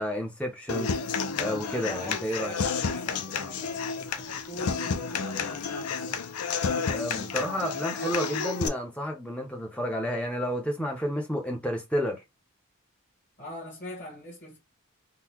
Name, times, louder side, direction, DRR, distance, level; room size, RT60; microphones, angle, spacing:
voice 1, 0.0-2.5 6.9-12.2, equal, 5° left, 0.8 m, -31 dB
Human voice / Acoustic guitar, 0.7-8.7, left 5 dB, 90° left, 0.6 m, -31 dB
voice 2, 1.8-6.2 13.4-14.6, left 1 dB, 35° left, 1.3 m, -42 dB
3.8 x 2.2 x 2.9 m
head